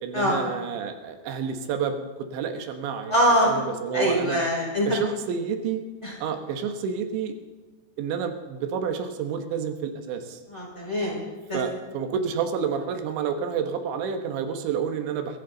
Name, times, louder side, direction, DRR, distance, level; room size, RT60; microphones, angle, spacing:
voice 1, 0.0-2.0 2.3-4.4 4.9-5.8 6.2-7.3 8.0-10.4 11.5-15.4, right 7 dB, 90° right, 6 dB, 3.5 m, -29 dB
voice 2, 3.1-3.6 3.9-4.9 6.0-6.1 10.5-11.2 11.5-11.6, equal, 5° left, -3 dB, 4.1 m, -23 dB
22.5 x 14.0 x 3.9 m, 1.3 s
omnidirectional pair, 5.1 m